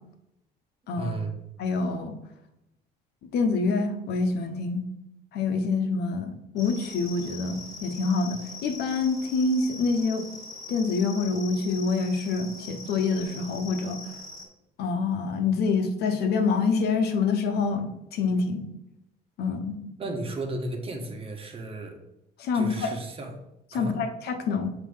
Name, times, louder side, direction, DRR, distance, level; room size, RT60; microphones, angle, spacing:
voice 1, 1.0-1.3 20.0-22.0 22.5-23.3 23.7-24.0, right 2 dB, 35° right, 3 dB, 1.3 m, -34 dB
voice 2, 1.6-2.1 3.3-4.9 5.3-10.2 10.7-14.0 14.8-18.7 19.4-19.8 22.4-23.0 23.7-24.7, left 4 dB, 75° left, 7 dB, 1.0 m, -26 dB
sound 1, 6.6-14.5, left 3 dB, 20° left, 2.6 m, -42 dB
7.4 x 3.1 x 5.5 m, 0.86 s
cardioid pair, 110°, 17 cm